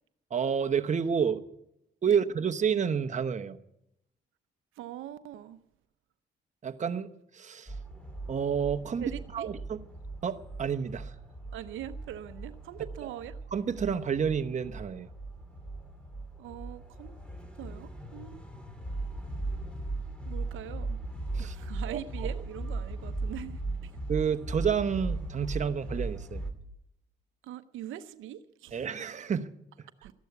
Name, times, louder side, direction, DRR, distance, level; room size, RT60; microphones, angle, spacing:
voice 1, 0.3-1.4 2.0-3.6 6.6-7.1 7.3-7.7 8.3-9.0 9.3-9.6 10.2-11.1 13.5-15.1 21.3-21.5 21.9-22.3 24.1-26.4 28.7-29.5 29.8-29.9, right 7 dB, 35° right, 8 dB, 1.0 m, -29 dB
voice 2, 4.8-5.6 9.0-9.5 11.5-13.4 16.4-17.2 17.6-18.4 20.2-21.0 21.4-24.0 27.4-28.8 30.0-30.1, right 11 dB, 85° right, 11 dB, 0.7 m, -42 dB
sound 1, 7.7-26.5, right 2 dB, 5° left, 2.6 m, -38 dB
13.5 x 11.5 x 8.2 m, 0.80 s
cardioid pair, 90°, 20 cm